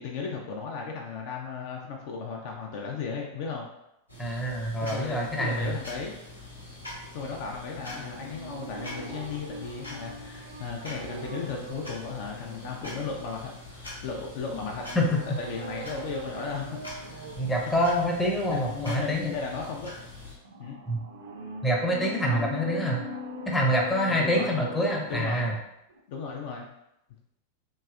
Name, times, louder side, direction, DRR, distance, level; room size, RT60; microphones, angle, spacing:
voice 1, 0.0-3.7 4.8-6.1 7.1-14.9 15.4-17.3 18.5-20.0 20.6-20.8 22.2-22.4 24.1-24.6 25.1-25.5 26.1-26.7, left 5 dB, 50° left, 0 dB, 0.4 m, -35 dB
sound 1, 4.1-20.4, left 2 dB, 80° left, 0.8 m, -44 dB
voice 2, 4.2-5.7 14.5-15.2 17.4-19.3 20.9-21.0 21.6-23.1 23.5-25.5, equal, 10° left, -2 dB, 0.6 m, -26 dB
sound 2, 7.8-13.6 14.6-17.6 20.4-25.6 25.9-26.0, right 1 dB, 60° right, 0.5 m, -41 dB
3.0 x 2.7 x 2.4 m, 0.82 s
figure-of-eight pair, 90°, 0 cm